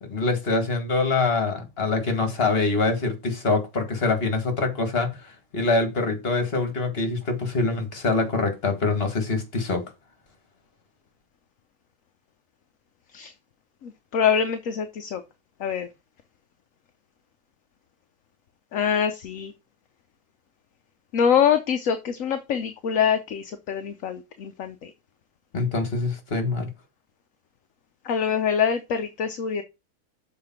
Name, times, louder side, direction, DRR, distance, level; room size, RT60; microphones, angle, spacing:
voice 1, 0.0-9.9 25.5-26.7, left 3 dB, 40° left, 2.1 m, -25 dB
voice 2, 13.8-15.2 15.6-15.9 18.7-19.5 21.1-24.9 28.0-29.6, left 7 dB, 65° left, 1.1 m, -24 dB
7.0 x 4.7 x 5.8 m
omnidirectional pair, 1.6 m